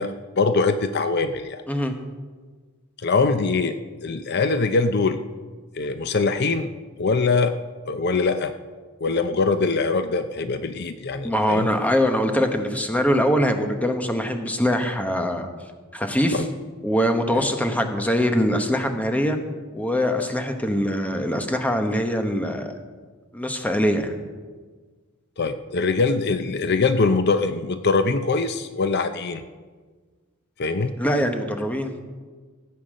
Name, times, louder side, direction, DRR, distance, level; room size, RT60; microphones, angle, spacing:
voice 1, 0.0-1.6 3.0-3.7 4.0-5.2 5.8-6.7 7.0-7.6 7.8-8.5 9.0-11.7 16.3-16.5 17.4-17.5 25.4-29.4 30.6-31.0, left 4 dB, 50° left, 10 dB, 0.6 m, -23 dB
voice 2, 11.2-15.5 15.9-16.4 16.8-19.4 19.7-22.7 23.3-24.2 31.0-31.9, equal, 5° left, 5 dB, 1.1 m, -23 dB
15.5 x 8.4 x 6.3 m, 1.4 s
head